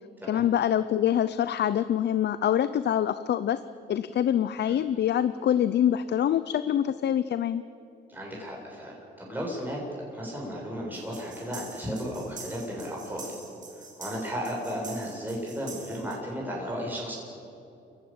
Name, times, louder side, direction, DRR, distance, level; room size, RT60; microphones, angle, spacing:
voice 1, 0.3-3.6 3.9-7.6, left 10 dB, 60° left, 14 dB, 0.7 m, -25 dB
voice 2, 8.1-9.8 10.1-13.3 13.8-17.1, equal, 10° right, -3 dB, 7.5 m, -34 dB
sound 1, 10.9-16.1, right 4 dB, 40° right, 5.7 m, -46 dB
28.5 x 15.5 x 9.0 m, 2.8 s
cardioid pair, 90°, 20 cm